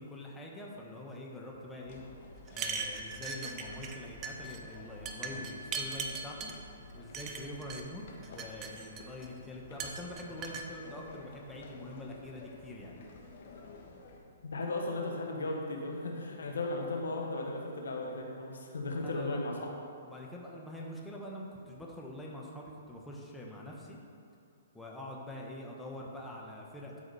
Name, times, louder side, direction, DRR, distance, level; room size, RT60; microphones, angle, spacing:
voice 1, 0.0-2.0 2.5-6.5 6.9-13.0 19.0-19.4 20.0-24.0 24.7-27.0, left 1 dB, 5° left, -3 dB, 1.2 m, -45 dB
sound 1, 1.8-14.2, left 2 dB, 55° left, 1.5 m, -52 dB
sound 2, 2.5-4.0 4.2-4.6 5.1-6.6 7.1-7.8 8.2-9.3 9.8-10.7, right 5 dB, 25° right, 0.8 m, -39 dB
voice 2, 14.5-19.6, left 2 dB, 80° left, 1 dB, 1.4 m, -36 dB
12.0 x 5.0 x 4.2 m, 2.5 s
hypercardioid pair, 135°, 0 cm